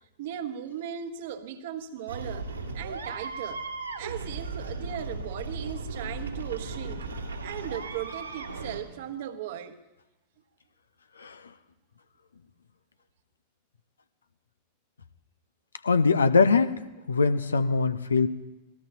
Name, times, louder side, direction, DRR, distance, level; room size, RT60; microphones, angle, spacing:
voice 1, 0.2-2.5 2.7-3.7 4.0-7.1 7.4-9.8, right 10 dB, 55° right, 1.3 m, -37 dB
sound 1, 2.1-8.8, right 3 dB, 80° right, 2.3 m, -36 dB
voice 2, 15.8-16.8 17.1-18.3, left 4 dB, 75° left, 0.8 m, -22 dB
26.0 x 19.0 x 3.0 m
figure-of-eight pair, 90°, 0 cm